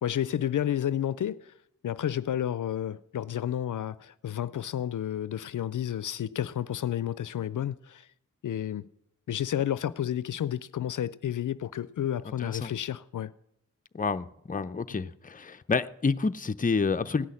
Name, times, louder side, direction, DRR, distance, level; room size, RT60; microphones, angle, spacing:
voice 1, 0.0-1.5 1.8-8.1 8.4-8.9 9.3-13.3 14.9-15.0, left 10 dB, 70° left, 0.5 m, -31 dB
voice 2, 12.4-12.7 13.9-17.3, left 4 dB, 25° left, 0.6 m, -29 dB
17.0 x 6.3 x 9.7 m
wide cardioid pair, 75°, 32 cm